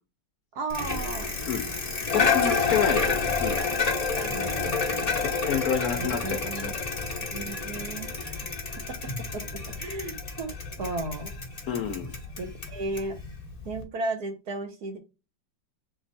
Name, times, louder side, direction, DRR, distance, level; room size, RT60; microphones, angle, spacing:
voice 1, 0.5-1.3 2.1-2.5 4.1-5.1 6.0-6.7 7.3-8.3 9.3-9.4 9.8-10.5 10.8-11.3 12.4-13.2 13.6-15.0, right 2 dB, 60° right, 5 dB, 1.4 m, -34 dB
Bicycle, 0.7-13.8, left 4 dB, 30° left, 0.8 m, -29 dB
voice 2, 2.1-3.6 5.2-6.7 11.7-12.1, left 7 dB, 65° left, 6 dB, 1.0 m, -29 dB
3.6 x 3.1 x 4.0 m, 0.27 s
omnidirectional pair, 2.0 m